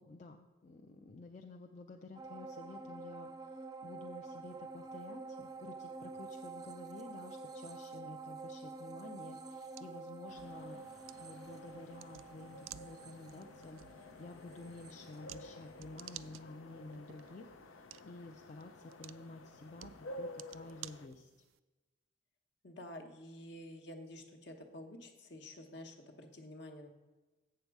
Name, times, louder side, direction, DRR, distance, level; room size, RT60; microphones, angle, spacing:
voice 1, 0.0-10.9 11.2-21.3, left 2 dB, 40° left, 2 dB, 0.4 m, -51 dB
sound 1, 2.2-15.8 16.2-16.3, right 3 dB, 20° right, 0.5 m, -48 dB
sound 2, 9.2-21.6, right 13 dB, 90° right, 0.3 m, -56 dB
sound 3, 10.3-21.1, left 1 dB, 85° left, 0.5 m, -52 dB
voice 2, 22.6-26.9, left 1 dB, 60° left, 5 dB, 1.0 m, -50 dB
7.9 x 6.7 x 4.6 m, 1.2 s
head